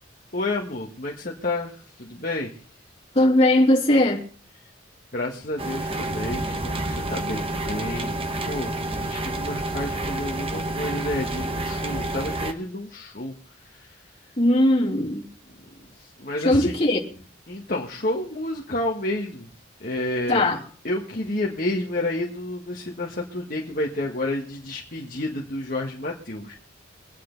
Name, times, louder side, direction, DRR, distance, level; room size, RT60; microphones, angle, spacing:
voice 1, 0.3-2.5 5.1-8.1 8.4-13.3 13.6-14.0 16.0-16.8 17.5-19.5 19.8-20.4 20.8-26.5, left 1 dB, 45° left, 1.5 m, -30 dB
voice 2, 3.1-4.2 14.4-15.3 16.4-17.0 20.3-20.6, left 1 dB, 30° left, 2.9 m, -19 dB
sound 1, 5.6-12.5, right 1 dB, 30° right, 1.2 m, -29 dB
23.5 x 9.4 x 4.0 m
head